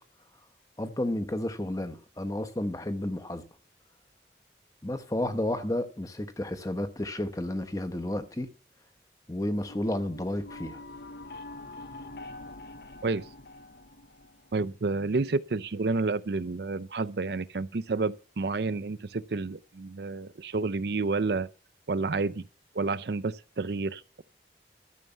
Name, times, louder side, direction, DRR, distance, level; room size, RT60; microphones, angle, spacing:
voice 1, 0.8-3.4 4.8-8.5 9.3-10.8, left 1 dB, 20° left, 1.0 m, -31 dB
sound 1, 9.6-14.7, left 2 dB, 60° left, 0.9 m, -45 dB
voice 2, 14.5-21.5 21.9-22.4 22.7-24.2, right 3 dB, 65° right, 0.5 m, -30 dB
12.5 x 6.7 x 7.1 m
head